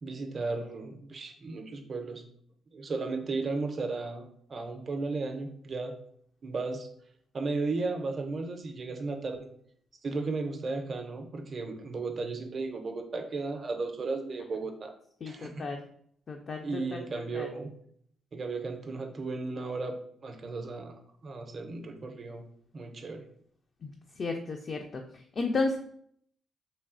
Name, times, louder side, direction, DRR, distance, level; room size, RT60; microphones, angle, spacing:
voice 1, 0.0-2.2 2.7-5.9 6.4-6.9 7.3-9.5 10.0-14.9 15.3-15.7 16.6-17.7 18.3-19.9 20.2-20.9 21.2-22.4 22.7-23.3, right 3 dB, 40° right, 5 dB, 0.5 m, -35 dB
voice 2, 15.2-15.8 16.3-16.6 17.3-17.5 24.2-25.0 25.4-25.8, left 3 dB, 45° left, 3 dB, 0.3 m, -32 dB
3.1 x 2.6 x 2.5 m, 0.65 s
cardioid pair, 90°, 0 cm